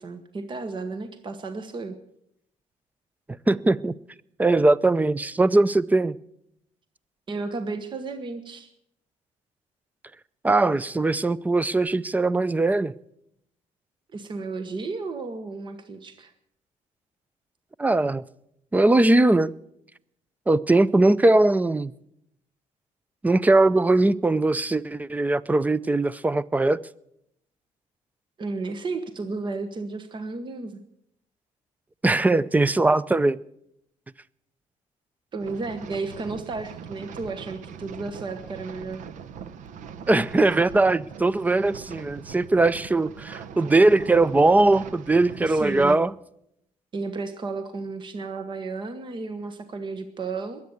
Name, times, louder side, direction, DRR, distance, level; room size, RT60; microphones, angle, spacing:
voice 1, 0.0-1.9 7.3-8.7 14.1-16.3 28.4-30.8 35.3-39.0 45.5-46.0 46.9-50.6, right 3 dB, 35° right, 1.2 m, -33 dB
voice 2, 3.5-4.0 4.4-6.1 10.4-12.9 17.8-18.2 18.7-19.5 20.5-21.9 23.2-26.8 32.0-33.4 40.1-46.1, right 2 dB, 10° right, 0.5 m, -20 dB
sound 1, 35.4-46.0, right 7 dB, 75° right, 0.9 m, -41 dB
21.5 x 8.5 x 8.0 m
cardioid pair, 120°, 13 cm